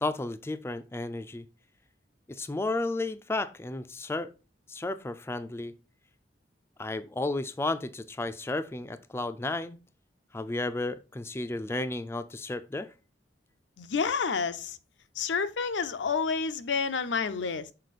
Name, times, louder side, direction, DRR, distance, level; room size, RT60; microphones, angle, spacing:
voice 1, 0.0-1.4 2.3-4.3 4.7-5.7 6.8-9.8 10.3-12.9, left 2 dB, 15° left, 0.3 m, -33 dB
voice 2, 13.8-14.8 15.2-17.7, left 5 dB, 85° left, 0.5 m, -29 dB
6.5 x 4.2 x 4.1 m
head